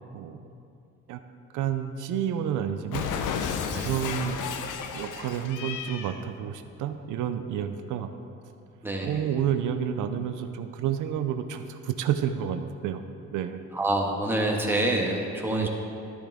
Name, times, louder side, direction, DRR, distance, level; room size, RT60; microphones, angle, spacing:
voice 1, 1.5-3.1 3.5-4.4 4.9-8.1 9.0-13.6 15.5-15.7, right 9 dB, 85° right, 8 dB, 0.6 m, -30 dB
Cat, 2.9-6.2, left 7 dB, 85° left, 0.7 m, -32 dB
voice 2, 8.8-9.2 13.7-15.7, right 1 dB, 5° right, -1 dB, 1.6 m, -27 dB
12.0 x 10.0 x 3.6 m, 2.5 s
cardioid pair, 90°, 30 cm